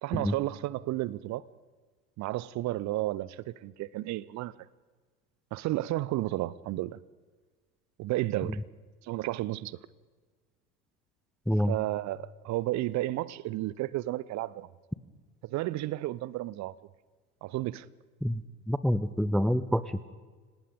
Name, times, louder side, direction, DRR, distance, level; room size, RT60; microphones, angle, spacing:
voice 1, 0.0-1.4 2.2-4.5 5.5-7.0 8.0-8.6 9.0-9.8 11.7-14.7 15.4-16.7 17.4-17.9, right 16 dB, 35° right, 0.7 m, -32 dB
voice 2, 18.7-20.0, equal, ahead, 0.5 m, -27 dB
27.0 x 18.5 x 5.2 m
figure-of-eight pair, 75°, 48 cm